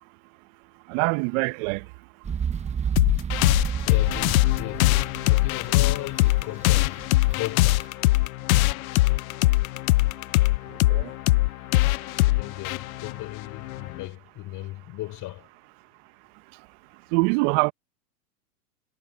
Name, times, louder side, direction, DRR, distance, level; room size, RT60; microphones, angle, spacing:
voice 1, 0.9-1.8 10.9-11.1 17.1-17.7, right 27 dB, 50° right, 1.3 m, -23 dB
sound 1, 2.2-7.8, right 7 dB, 15° right, 0.8 m, -31 dB
sound 2, 3.0-14.0, left 19 dB, 60° left, 0.8 m, -22 dB
voice 2, 3.9-4.9 5.3-7.8 12.3-15.5, left 17 dB, 40° left, 5.3 m, -36 dB
hypercardioid pair, 105°, 47 cm